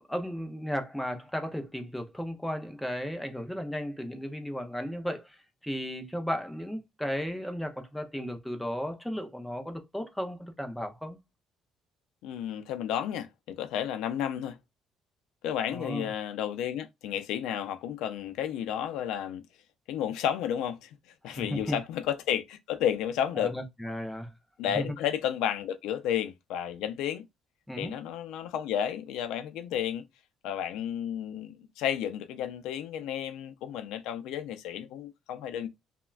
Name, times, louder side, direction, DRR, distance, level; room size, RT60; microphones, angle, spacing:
voice 1, 0.0-5.4 5.6-11.2 15.7-16.1 21.3-21.8 23.4-24.3 24.7-24.9 27.7-27.9, equal, ahead, 0.4 m, -35 dB
voice 2, 12.2-14.6 15.4-19.4 19.9-21.0 21.2-23.5 24.6-27.2 27.8-30.0 30.4-35.7, left 10 dB, 80° left, 0.3 m, -32 dB
3.2 x 2.1 x 2.3 m
cardioid pair, 170°, 0 cm